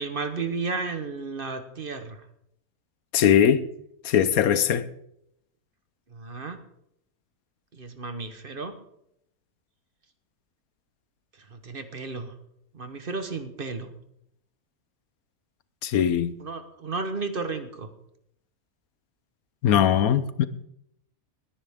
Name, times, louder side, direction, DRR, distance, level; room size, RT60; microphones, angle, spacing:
voice 1, 0.0-2.3 6.1-6.6 7.7-8.7 11.4-12.3 12.7-13.9 16.4-17.9, right 4 dB, 40° right, 1.2 m, -33 dB
voice 2, 3.1-3.6 4.0-4.9 15.8-16.4 19.6-20.5, left 9 dB, 85° left, 1.2 m, -20 dB
20.0 x 10.5 x 3.6 m
omnidirectional pair, 1.5 m